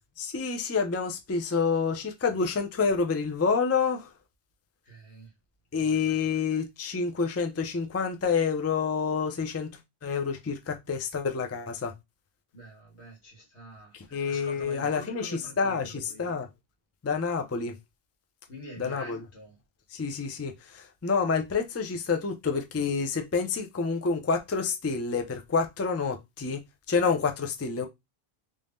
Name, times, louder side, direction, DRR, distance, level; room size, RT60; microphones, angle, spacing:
voice 1, 0.2-4.1 5.7-9.7 10.0-11.9 13.9-16.5 17.0-17.7 18.8-19.2 19.9-26.6 26.9-27.9, left 5 dB, 25° left, 0.3 m, -28 dB
voice 2, 4.8-5.3 5.7-6.2 12.5-16.3 18.5-19.6, right 1 dB, 85° left, 1.8 m, -46 dB
3.3 x 2.6 x 3.5 m
omnidirectional pair, 1.1 m